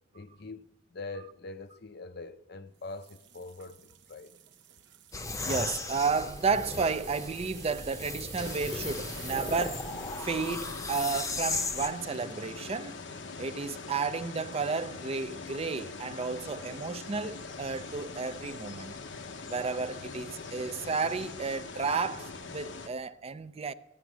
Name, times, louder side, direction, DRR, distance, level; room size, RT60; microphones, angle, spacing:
voice 1, 0.1-4.3, left 3 dB, 60° left, 0.6 m, -43 dB
sound 1, 2.8-12.7 13.2-13.5 14.0-14.1, right 11 dB, 65° right, 0.8 m, -51 dB
sound 2, 5.1-11.9, left 3 dB, 20° left, 0.7 m, -36 dB
voice 2, 5.4-9.9 10.2-13.0 13.4-19.0 19.5-23.7, right 4 dB, 35° right, 0.4 m, -32 dB
sound 3, 8.4-22.9, left 4 dB, 80° left, 0.9 m, -42 dB
14.5 x 9.2 x 6.1 m
head